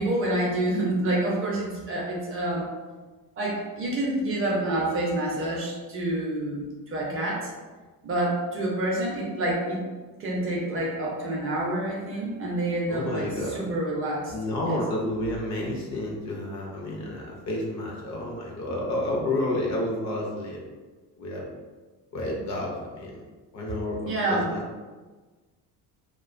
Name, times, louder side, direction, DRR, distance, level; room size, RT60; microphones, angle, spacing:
voice 1, 0.0-2.7 3.4-7.5 8.0-9.8 10.2-14.3 14.6-14.8 24.1-24.5, right 1 dB, 35° right, -4 dB, 0.5 m, -28 dB
voice 2, 12.9-13.6 14.3-20.6 21.2-21.5 22.1-23.2 23.5-24.8, left 1 dB, 50° left, -2 dB, 0.5 m, -30 dB
2.4 x 2.1 x 2.4 m, 1.3 s
cardioid pair, 175°, 37 cm